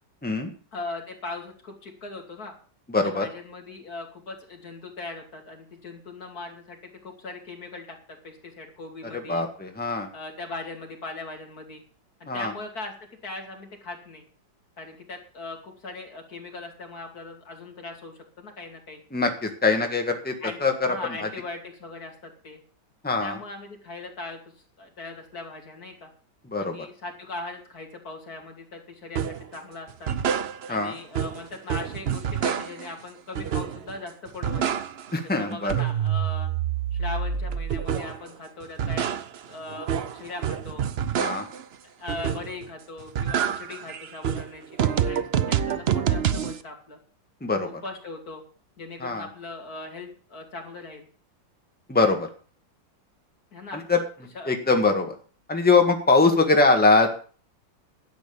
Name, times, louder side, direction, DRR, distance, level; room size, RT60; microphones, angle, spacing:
voice 1, 0.7-2.5 3.0-9.4 10.1-11.8 12.2-12.9 13.2-14.2 14.8-19.0 20.4-22.6 23.2-24.4 24.8-26.1 26.6-30.1 30.7-34.8 35.2-36.5 36.9-39.2 39.5-39.9 40.1-40.9 42.0-47.0 47.6-48.4 48.8-51.1 53.5-53.8 54.3-54.5, left 3 dB, 55° left, 2 dB, 3.0 m, -39 dB
voice 2, 2.9-3.3 9.3-10.1 12.3-12.5 19.1-20.3 20.6-21.3 23.0-23.4 26.5-26.9 30.7-30.9 35.1-35.7 41.2-41.4 47.4-47.7 49.0-49.2 51.9-52.3 53.7-54.0 54.5-55.1 55.5-57.1, left 3 dB, 5° left, 4 dB, 1.5 m, -22 dB
sound 1, 29.2-29.5 29.9-30.9 31.1-32.9 33.4-34.0 34.3-35.2 35.5-38.3 38.6-41.6 42.1-42.7 43.0-46.6, right 8 dB, 80° right, 0.5 m, -27 dB
11.5 x 8.1 x 7.0 m, 0.41 s
omnidirectional pair, 2.0 m